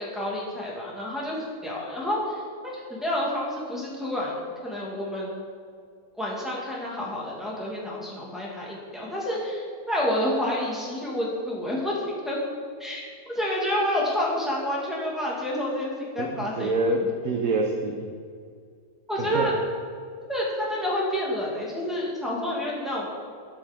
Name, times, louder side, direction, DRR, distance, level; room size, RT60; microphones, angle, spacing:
voice 1, 0.0-5.4 6.2-12.4 12.8-13.0 13.3-16.7 17.0-17.1 19.1-19.5 20.3-23.1, left 1 dB, ahead, -6 dB, 2.2 m, -29 dB
voice 2, 16.2-18.1 19.2-19.5, right 2 dB, 60° right, 1 dB, 1.2 m, -26 dB
13.0 x 5.4 x 5.2 m, 2.2 s
omnidirectional pair, 1.7 m